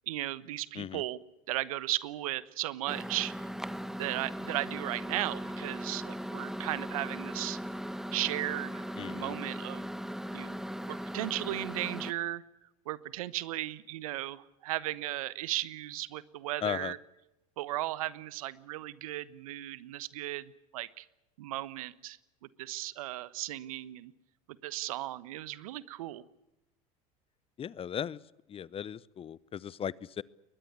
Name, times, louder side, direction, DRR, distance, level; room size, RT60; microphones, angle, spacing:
voice 1, 0.1-1.2 1.5-3.3 4.0-7.6 8.1-9.8 10.3-10.6 10.9-12.4 12.8-17.0 17.6-21.1 21.4-22.2 22.6-24.1 24.6-26.2, right 16 dB, 75° right, 18 dB, 1.2 m, -36 dB
Microwave oven, 2.9-12.1, equal, ahead, 1.3 m, -38 dB
voice 2, 9.0-9.3 16.6-16.9 27.6-28.2 28.5-30.2, left 8 dB, 30° left, 22 dB, 0.8 m, -37 dB
22.0 x 21.0 x 8.2 m, 0.92 s
hypercardioid pair, 80°, 18 cm